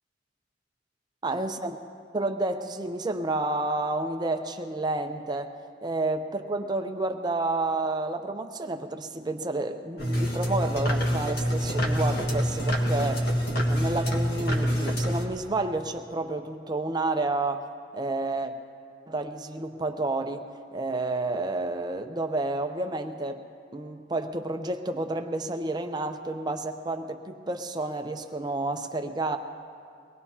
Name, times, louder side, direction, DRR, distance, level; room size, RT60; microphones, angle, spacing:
voice 1, 1.2-1.8 2.1-5.5 5.8-13.3 13.6-17.7 17.9-18.5 19.1-23.4 23.7-29.4, right 2 dB, 25° right, 6 dB, 0.6 m, -30 dB
sound 1, 10.0-15.2, equal, 60° left, 1.7 m, -26 dB
23.5 x 19.0 x 2.8 m, 2.3 s
head